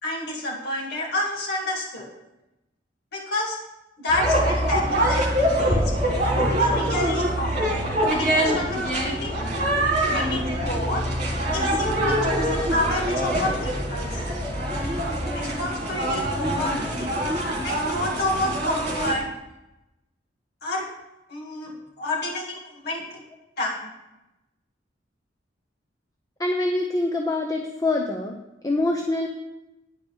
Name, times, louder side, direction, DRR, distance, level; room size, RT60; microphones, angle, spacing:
voice 1, 0.0-2.1 3.1-3.6 4.0-5.9 6.3-7.8 8.1-9.4 10.1-11.0 11.5-14.2 15.3-17.2 17.6-19.3 20.6-20.9 21.3-21.7 22.0-23.2 23.6-23.9, left 1 dB, 60° left, -2 dB, 1.7 m, -29 dB
sound 1, 4.1-19.1, right 1 dB, 40° right, 2.2 m, -24 dB
voice 2, 26.4-28.4 28.6-29.3, left 2 dB, 20° left, 2 dB, 0.7 m, -25 dB
10.0 x 5.2 x 7.0 m, 0.93 s
head